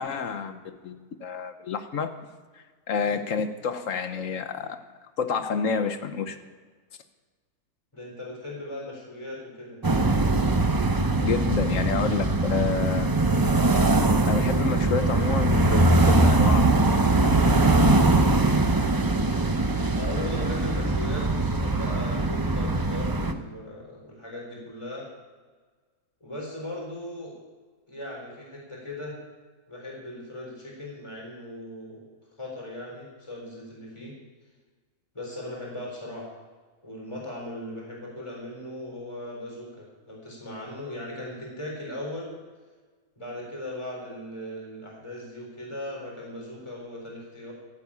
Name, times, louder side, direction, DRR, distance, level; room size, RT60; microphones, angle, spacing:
voice 1, 0.0-2.1 2.5-4.8 5.2-6.4 11.2-13.1 14.3-16.8, left 5 dB, 60° left, 9 dB, 1.2 m, -29 dB
voice 2, 7.9-9.8 18.8-19.2 19.9-25.1 26.2-27.3 27.9-29.2 29.7-32.1 32.4-34.1 35.1-36.3 36.8-42.3 43.2-47.5, left 1 dB, 20° left, -3 dB, 4.1 m, -38 dB
sound 1, 9.8-23.3, right 2 dB, 25° right, 0.4 m, -22 dB
14.0 x 8.4 x 8.6 m, 1.4 s
omnidirectional pair, 1.6 m